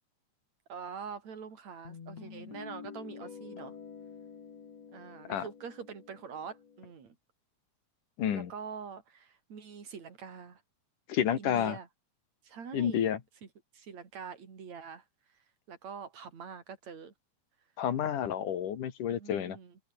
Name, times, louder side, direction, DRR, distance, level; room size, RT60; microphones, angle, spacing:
voice 1, 0.7-3.7 4.9-7.2 8.3-10.6 11.4-11.9 12.4-13.0 13.7-15.0 15.7-17.1 19.1-19.7, right 6 dB, 60° right, 4.8 m, -44 dB
Guitar, 1.8-6.9, left 6 dB, 55° left, 4.0 m, -48 dB
voice 2, 8.2-8.5 11.1-11.8 12.7-13.2 17.8-19.6, left 9 dB, 85° left, 3.7 m, -30 dB
omnidirectional pair, 3.5 m